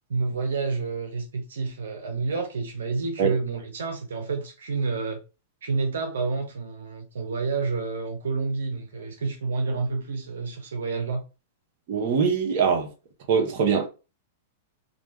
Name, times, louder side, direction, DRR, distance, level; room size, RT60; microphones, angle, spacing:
voice 1, 0.1-5.2 5.6-11.2, right 4 dB, 90° right, 0.7 m, -29 dB
voice 2, 11.9-12.9 13.3-13.9, right 6 dB, 50° right, 0.9 m, -22 dB
2.5 x 2.3 x 3.2 m
hypercardioid pair, 135°, 0 cm